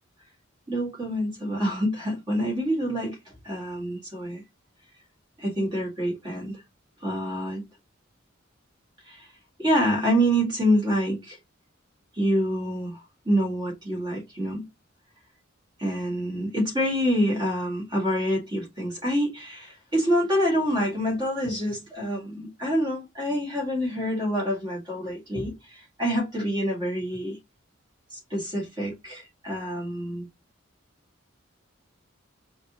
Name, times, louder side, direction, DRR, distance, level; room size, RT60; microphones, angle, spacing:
voice 1, 0.7-4.4 5.4-6.6 7.0-7.6 9.1-9.3 9.6-11.4 12.1-13.0 13.3-14.7 15.8-27.4 28.1-30.3, equal, 20° right, 2.1 m, -27 dB
5.2 x 2.7 x 3.0 m
head